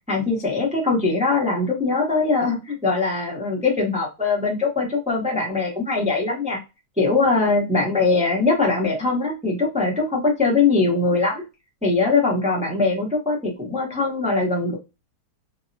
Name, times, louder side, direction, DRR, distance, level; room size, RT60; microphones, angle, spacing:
voice 1, 0.1-6.6 7.0-11.4 11.8-14.7, left 3 dB, 10° right, -2 dB, 0.3 m, -21 dB
3.4 x 2.0 x 2.6 m, 0.26 s
omnidirectional pair, 1.7 m